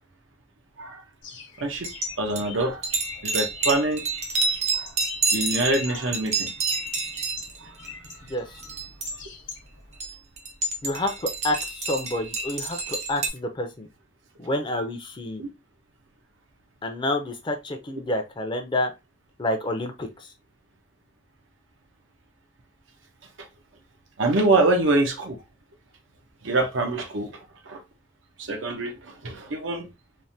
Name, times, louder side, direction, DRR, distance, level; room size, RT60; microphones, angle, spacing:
Bird, 1.2-10.0, left 5 dB, 80° left, 0.9 m, -44 dB
voice 1, 1.6-1.9 2.2-2.9 3.2-4.0 4.7-4.9 5.3-6.5 7.6-7.7 15.4-15.5 24.2-25.4 26.4-27.8 28.4-29.9, right 2 dB, 85° right, 0.8 m, -25 dB
sound 1, 1.7-2.1 2.4-7.6 7.8-8.3 8.6-9.2 9.5-9.6 10.0-13.3, right 3 dB, 35° right, 0.6 m, -29 dB
voice 2, 8.3-8.6 10.8-13.9 14.4-15.4 16.8-18.9 19.4-20.1, left 1 dB, 25° left, 0.4 m, -28 dB
3.2 x 2.1 x 2.6 m
head